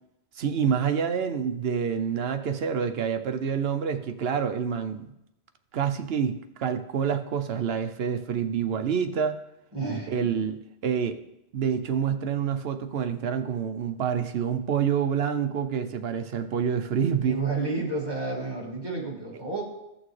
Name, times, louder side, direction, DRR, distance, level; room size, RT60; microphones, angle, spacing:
voice 1, 0.4-5.1 5.7-9.4 10.1-11.2 11.5-17.4, right 7 dB, 65° right, 9 dB, 0.9 m, -27 dB
voice 2, 9.7-10.3 17.2-19.6, right 3 dB, 20° right, -4 dB, 2.3 m, -30 dB
15.5 x 6.3 x 3.2 m, 0.87 s
omnidirectional pair, 1.2 m